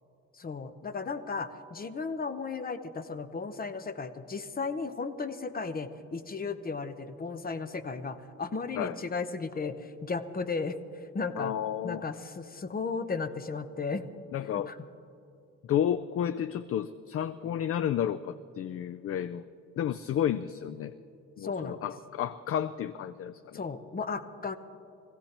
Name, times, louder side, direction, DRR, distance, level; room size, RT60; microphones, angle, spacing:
voice 1, 0.4-10.8 11.1-11.5 11.8-14.1 14.7-14.8 21.4-21.8 23.5-24.6, left 4 dB, 30° left, 10 dB, 0.9 m, -35 dB
voice 2, 11.4-12.0 14.3-14.7 15.7-19.4 19.8-20.9 21.4-23.6, left 10 dB, 50° left, 14 dB, 0.4 m, -31 dB
25.0 x 16.5 x 3.0 m, 2.8 s
cardioid pair, 90°, 30 cm